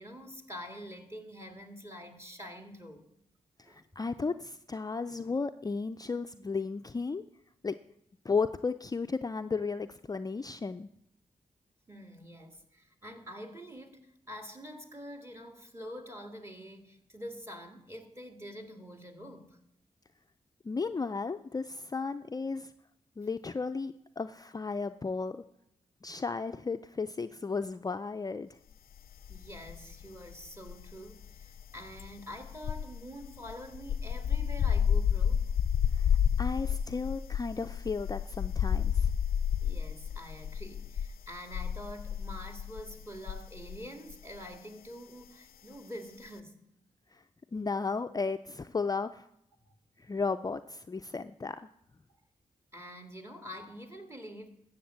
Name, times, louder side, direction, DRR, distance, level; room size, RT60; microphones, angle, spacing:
voice 1, 0.0-3.1 3.6-3.8 11.9-19.6 29.3-35.5 39.6-46.6 49.6-49.7 52.7-54.5, equal, 15° right, 2.0 m, -46 dB
voice 2, 3.7-7.2 7.6-7.7 8.2-10.9 20.6-22.7 23.2-25.4 26.0-28.6 35.9-39.1 47.1-47.2 47.5-49.3 50.0-51.7, left 4 dB, 25° left, 0.4 m, -34 dB
sound 1, 29.2-30.1 30.3-43.8 44.1-44.4, left 8 dB, 85° left, 0.4 m, -30 dB
13.0 x 7.8 x 7.5 m
cardioid pair, 75°, 15 cm